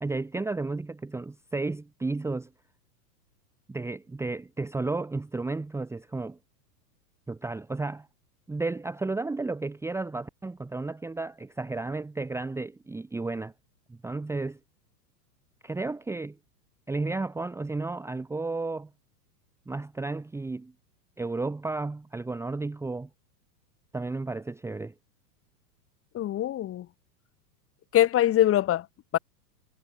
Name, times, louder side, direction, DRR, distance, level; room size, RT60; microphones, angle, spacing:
voice 1, 0.0-2.5 3.7-6.4 7.3-8.1 8.5-13.5 13.9-14.6 15.6-16.4 16.9-18.9 19.7-20.7 21.2-23.1 23.9-24.9, right 3 dB, 5° right, 1.1 m, -33 dB
voice 2, 26.1-26.9 27.9-28.9 29.1-29.2, left 12 dB, 25° left, 2.5 m, -23 dB
hypercardioid pair, 125°, 49 cm